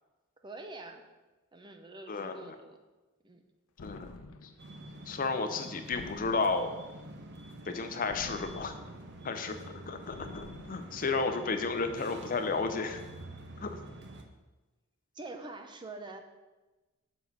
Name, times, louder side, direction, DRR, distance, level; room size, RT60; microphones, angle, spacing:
voice 1, 0.4-1.0 1.5-2.8 3.2-3.4 15.1-16.2, right 2 dB, 20° right, 5 dB, 0.6 m, -45 dB
voice 2, 2.1-2.5 3.8-4.1 5.1-6.7 7.7-8.8 9.2-13.0 13.6-13.8, left 4 dB, 40° left, 7 dB, 0.6 m, -32 dB
sound 1, 3.8-4.7 5.9-6.9 8.1-9.1 10.1-11.0, left 3 dB, 80° left, 0.6 m, -48 dB
sound 2, 4.6-14.2, right 1 dB, 55° right, 0.7 m, -47 dB
7.1 x 4.0 x 6.0 m, 1.2 s
head